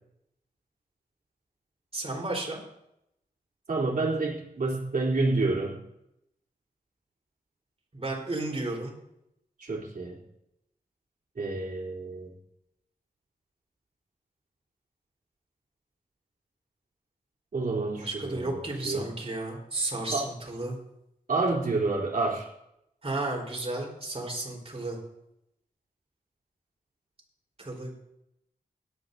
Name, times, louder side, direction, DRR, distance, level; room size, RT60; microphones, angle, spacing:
voice 1, 1.9-2.6 7.9-8.9 18.0-20.8 23.0-25.0 27.6-27.9, right 2 dB, 40° right, -1 dB, 4.1 m, -33 dB
voice 2, 3.7-5.8 9.6-10.2 11.4-12.3 17.5-19.1 20.1-20.3 21.3-22.5, right 3 dB, 70° right, -3 dB, 3.4 m, -29 dB
17.5 x 11.5 x 2.7 m, 0.81 s
wide cardioid pair, 85°, 15 cm